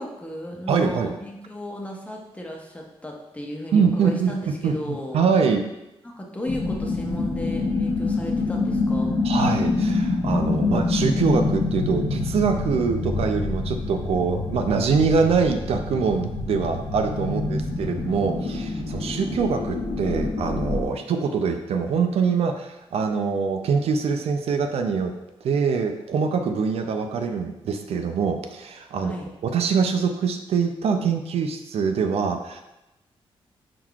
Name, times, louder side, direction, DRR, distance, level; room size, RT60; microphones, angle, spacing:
voice 1, 0.0-5.2 6.0-9.1 17.3-17.9 29.0-29.3, left 1 dB, 15° left, -1 dB, 0.8 m, -35 dB
voice 2, 0.7-1.1 3.7-5.6 9.2-25.1 25.4-29.2 29.4-32.6, right 5 dB, 75° right, 6 dB, 0.4 m, -24 dB
sound 1, 6.5-20.9, left 3 dB, 45° left, 0.8 m, -26 dB
4.6 x 3.7 x 2.3 m, 0.93 s
cardioid pair, 90°, 10 cm